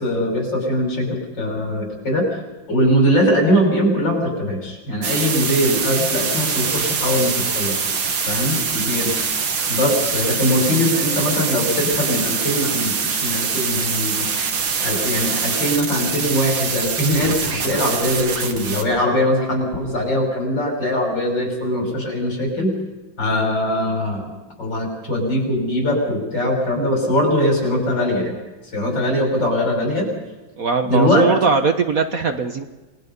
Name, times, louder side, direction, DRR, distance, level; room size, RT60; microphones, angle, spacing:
voice 1, 0.0-2.3 2.7-8.0 8.3-9.1 9.7-14.3 14.8-22.7 23.2-24.3 24.6-28.4 28.7-30.1 30.9-31.3, equal, 65° left, 1 dB, 6.8 m, -21 dB
sound 1, 5.0-18.8, right 5 dB, 70° right, 2.6 m, -24 dB
voice 2, 30.6-32.7, right 4 dB, 50° right, 6 dB, 1.6 m, -20 dB
28.0 x 20.0 x 5.4 m, 1.2 s
omnidirectional pair, 2.1 m